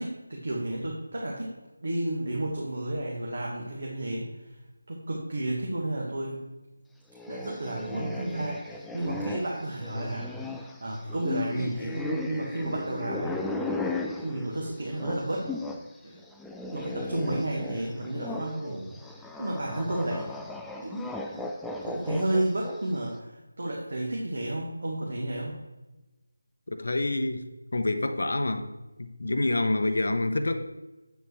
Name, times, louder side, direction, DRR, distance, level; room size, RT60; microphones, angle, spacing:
voice 1, 0.0-4.5 4.9-6.5 7.3-13.4 14.2-15.5 16.0-16.2 16.7-19.0 19.4-20.4 20.8-21.1 21.4-21.5 21.9-25.6, right 1 dB, 55° right, -2 dB, 1.5 m, -32 dB
sound 1, 7.1-15.9 16.2-23.0, left 2 dB, ahead, 0.3 m, -37 dB
voice 2, 26.7-27.5 27.7-28.7 29.0-30.6, left 2 dB, 55° left, 8 dB, 0.7 m, -27 dB
8.3 x 6.9 x 3.1 m, 1.1 s
figure-of-eight pair, 160°, 0 cm